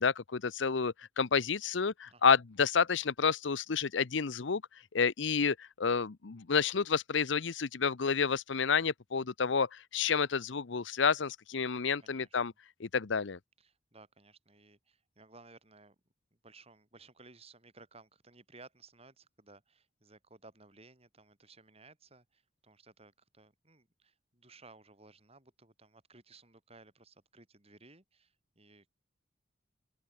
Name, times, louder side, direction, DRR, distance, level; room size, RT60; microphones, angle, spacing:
voice 1, 0.0-4.6 4.9-12.5 12.8-13.4, left 5 dB, 70° left, 0.7 m, -30 dB
voice 2, 12.0-12.4 13.6-16.0 16.4-28.9, right 3 dB, 30° right, 7.0 m, -58 dB
open air
head